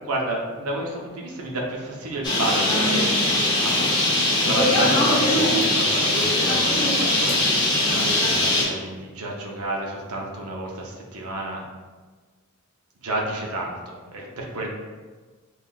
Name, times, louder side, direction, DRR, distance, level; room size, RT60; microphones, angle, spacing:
voice 1, 0.0-3.7 4.4-11.6 13.0-14.7, right 1 dB, 85° right, -1 dB, 0.6 m, -30 dB
Bird, 2.2-8.6, left 1 dB, 20° left, 0.7 m, -21 dB
5.5 x 2.4 x 2.3 m, 1.4 s
head